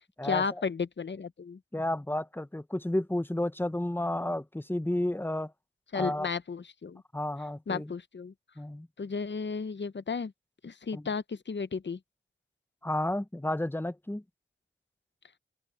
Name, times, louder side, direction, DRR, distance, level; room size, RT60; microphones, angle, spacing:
voice 1, 0.2-1.6 5.9-7.0 7.7-8.3 9.0-10.3 10.6-12.0, left 5 dB, 60° left, 0.8 m, -33 dB
voice 2, 1.7-5.5 5.9-6.3 7.1-7.9 8.6-8.9 10.9-11.0 12.8-14.2, left 1 dB, 10° left, 0.9 m, -31 dB
open air
wide cardioid pair, 50°, 21 cm